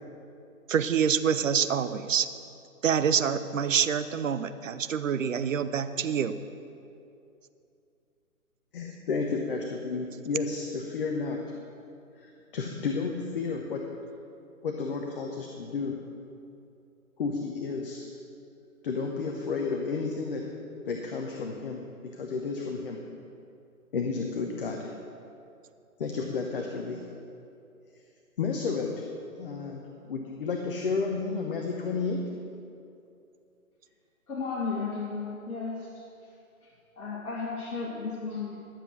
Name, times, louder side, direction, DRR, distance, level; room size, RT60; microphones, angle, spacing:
voice 1, 0.7-2.3 2.8-6.4, right 7 dB, 60° right, 11 dB, 0.7 m, -26 dB
voice 2, 8.7-11.4 12.1-13.8 14.6-16.0 17.2-18.0 18.8-20.4 20.8-21.9 22.1-23.0 23.9-24.9 26.0-27.0 28.4-29.1 29.4-32.2, left 4 dB, 40° left, 1 dB, 0.9 m, -32 dB
voice 3, 34.3-36.1 37.0-38.6, left 4 dB, 60° left, -5 dB, 2.0 m, -34 dB
12.0 x 7.5 x 6.2 m, 2.6 s
hypercardioid pair, 150°, 44 cm